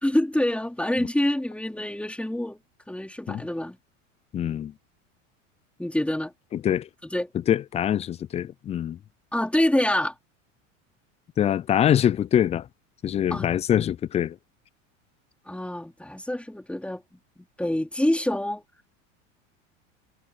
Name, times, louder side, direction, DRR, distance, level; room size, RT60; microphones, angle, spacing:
voice 1, 0.0-2.6 2.9-3.8 5.8-6.3 7.0-7.3 9.3-10.1 13.3-13.5 15.5-17.0 17.4-18.6, left 1 dB, 5° left, 3.8 m, -26 dB
voice 2, 4.3-4.7 6.5-6.9 7.5-9.0 11.4-12.7 13.0-14.4, left 10 dB, 20° left, 0.3 m, -24 dB
hypercardioid pair, 100°, 38 cm